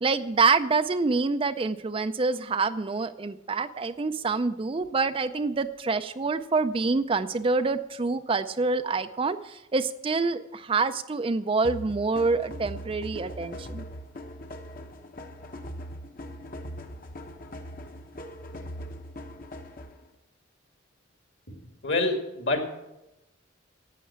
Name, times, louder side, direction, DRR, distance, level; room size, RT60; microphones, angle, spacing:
voice 1, 0.0-13.8, right 4 dB, 25° right, 11 dB, 0.4 m, -26 dB
sound 1, 11.6-20.1, equal, 45° left, 1.1 m, -40 dB
voice 2, 21.8-22.7, left 2 dB, 60° left, 5 dB, 2.3 m, -26 dB
11.5 x 8.4 x 8.6 m, 0.93 s
head